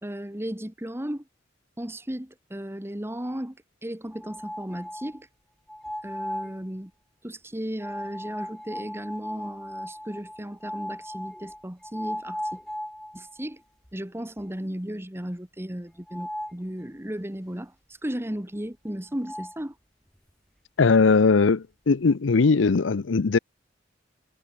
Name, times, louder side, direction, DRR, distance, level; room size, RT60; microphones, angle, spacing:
voice 1, 0.0-1.2 1.8-5.3 6.0-6.9 7.2-12.6 13.1-13.6 13.9-17.7 18.0-19.7, equal, 15° right, 1.7 m, -35 dB
sound 1, 4.1-5.2 5.7-6.6 7.8-13.4 13.8-13.9 14.4-14.5 16.1-16.6 18.9-19.0 19.2-19.6, left 1 dB, 5° left, 2.7 m, -37 dB
voice 2, 20.8-23.4, left 4 dB, 75° left, 0.6 m, -20 dB
head